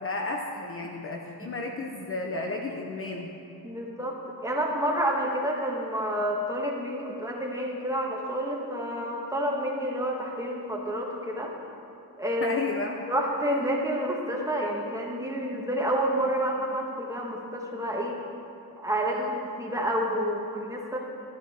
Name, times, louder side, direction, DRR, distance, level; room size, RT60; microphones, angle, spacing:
voice 1, 0.0-3.3 12.4-13.1 19.1-19.3, left 2 dB, 35° left, 1 dB, 0.8 m, -33 dB
voice 2, 3.6-11.5 12.2-12.6 13.1-18.2 18.8-21.0, equal, 10° right, -2 dB, 1.5 m, -29 dB
12.0 x 10.0 x 4.4 m, 2.7 s
cardioid pair, 115°, 40 cm